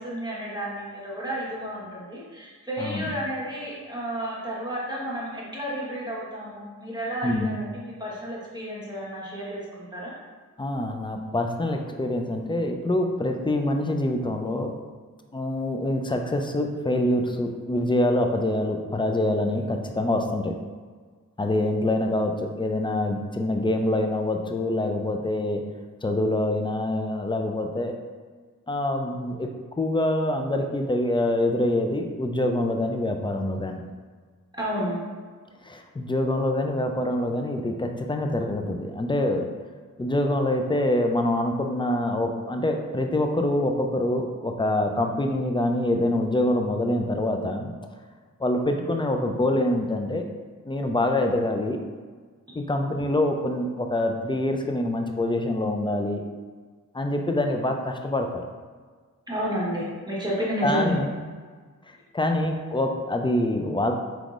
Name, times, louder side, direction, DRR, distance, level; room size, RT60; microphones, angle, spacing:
voice 1, 0.0-10.1 34.6-34.9 59.3-60.9, equal, 10° right, -6 dB, 1.1 m, -31 dB
voice 2, 2.8-3.1 7.2-7.6 10.6-14.7 15.3-20.5 21.4-25.6 26.0-27.9 28.7-29.5 29.8-33.8 35.6-39.4 40.0-47.7 48.4-50.2 50.7-51.8 52.6-56.2 56.9-58.4 60.6-61.1 62.1-63.9, left 1 dB, 15° left, 4 dB, 0.4 m, -25 dB
3.6 x 3.0 x 2.5 m, 1.5 s
cardioid pair, 40°, 34 cm